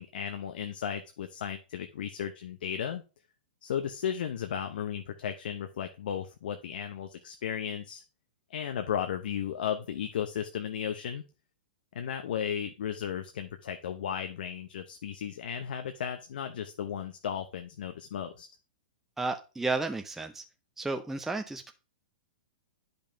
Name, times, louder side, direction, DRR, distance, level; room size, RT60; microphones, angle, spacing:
voice 1, 0.0-3.0 3.6-8.0 8.5-11.2 11.9-18.5, left 8 dB, 70° left, 7 dB, 0.7 m, -35 dB
voice 2, 19.2-20.4 20.8-21.7, right 3 dB, 5° right, 6 dB, 0.5 m, -32 dB
10.0 x 5.3 x 2.7 m, 0.32 s
hypercardioid pair, 115°, 5 cm